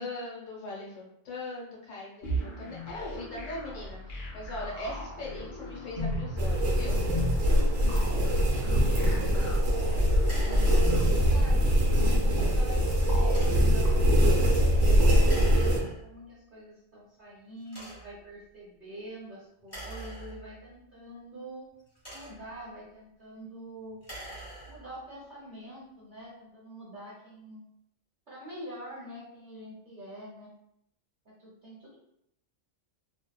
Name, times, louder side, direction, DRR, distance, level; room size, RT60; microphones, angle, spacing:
voice 1, 0.0-7.0, left 2 dB, 75° left, -4 dB, 1.2 m, -40 dB
sound 1, 2.2-15.8, equal, 50° left, 0.7 m, -34 dB
sound 2, 6.4-15.8, equal, 70° right, 1.0 m, -23 dB
sound 3, 8.5-8.7 10.2-11.3 13.2-13.8 15.2-16.2 16.9-17.0 17.6-18.3 19.6-20.8 21.7-22.6 23.9-25.0, right 1 dB, 15° left, 1.1 m, -45 dB
voice 2, 8.6-14.0 14.7-21.7 22.1-24.0 24.6-27.6 28.3-30.5 31.2-32.0, right 1 dB, 45° right, -6 dB, 0.8 m, -45 dB
2.7 x 2.1 x 2.2 m, 0.74 s
omnidirectional pair, 1.3 m